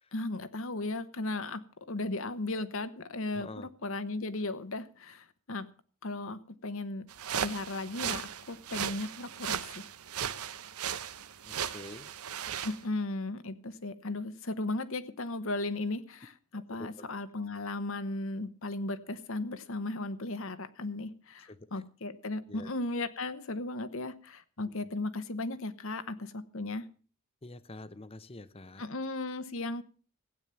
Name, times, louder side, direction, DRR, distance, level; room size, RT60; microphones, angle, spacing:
voice 1, 0.1-5.7 6.0-7.1 7.4-9.9 12.6-26.9 28.8-29.8, left 2 dB, 65° left, 1.1 m, -36 dB
voice 2, 3.3-3.7 11.4-12.1 16.5-17.0 21.5-21.8 22.5-22.7 24.7-24.8 27.4-28.8, left 2 dB, 25° left, 0.7 m, -47 dB
sound 1, 7.1-12.8, right 8 dB, 85° right, 0.9 m, -37 dB
16.0 x 9.1 x 6.9 m
head